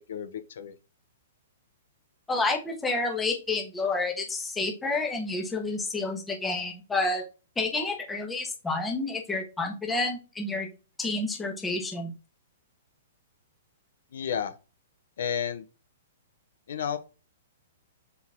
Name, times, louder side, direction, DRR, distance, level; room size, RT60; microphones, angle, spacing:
voice 1, 0.1-0.7 14.1-14.5 15.2-15.6 16.7-17.0, left 8 dB, 65° left, 1.0 m, -31 dB
voice 2, 2.3-7.2 7.6-10.7 11.0-12.1, left 3 dB, 5° left, 1.4 m, -29 dB
7.0 x 4.2 x 3.7 m
hypercardioid pair, 170°, 0 cm